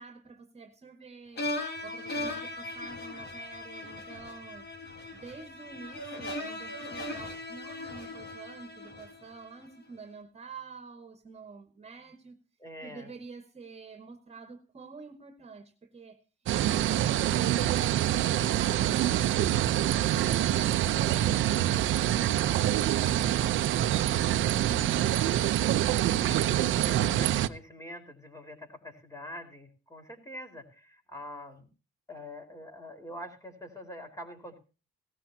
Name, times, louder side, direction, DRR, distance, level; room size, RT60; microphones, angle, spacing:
voice 1, 0.0-1.5 1.8-4.7 5.1-12.4 12.8-16.2 16.5-21.3 22.1-25.7, right 4 dB, 30° right, 1.9 m, -48 dB
sound 1, 1.4-9.6, left 2 dB, 55° left, 4.5 m, -38 dB
voice 2, 12.6-13.1 22.5-22.6 26.1-31.7 32.1-34.6, left 1 dB, 15° left, 4.7 m, -44 dB
sound 2, 16.5-27.5, right 12 dB, 80° right, 0.7 m, -26 dB
18.0 x 13.5 x 2.9 m
cardioid pair, 90°, 20 cm